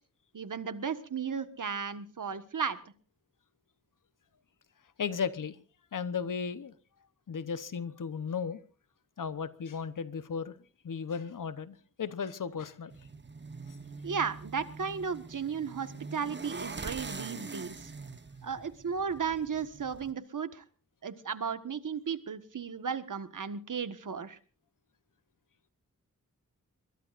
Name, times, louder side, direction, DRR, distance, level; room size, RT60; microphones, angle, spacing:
voice 1, 0.3-2.8 14.0-17.9 18.4-20.6 21.0-24.4, right 6 dB, 75° right, 1.5 m, -35 dB
voice 2, 5.0-5.6 5.9-6.7 7.3-8.6 9.2-10.6 10.8-12.9 13.7-13.8, left 6 dB, 80° left, 1.0 m, -35 dB
sound 1, 12.9-20.1, right 4 dB, 35° right, 1.1 m, -44 dB
23.0 x 21.0 x 2.5 m
cardioid pair, 55°, 31 cm